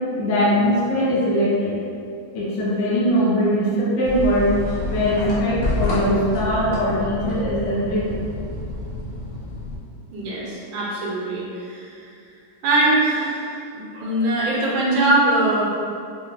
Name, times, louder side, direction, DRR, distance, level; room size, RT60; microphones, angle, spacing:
voice 1, 0.2-1.7 2.3-4.6 4.9-8.2, equal, 65° left, -7 dB, 1.4 m, -21 dB
sound 1, 4.0-9.8, left 1 dB, 85° left, 1.5 m, -28 dB
voice 2, 10.1-11.9 12.6-15.7, right 2 dB, 80° right, -5 dB, 1.5 m, -22 dB
4.6 x 2.5 x 2.4 m, 2.4 s
omnidirectional pair, 2.2 m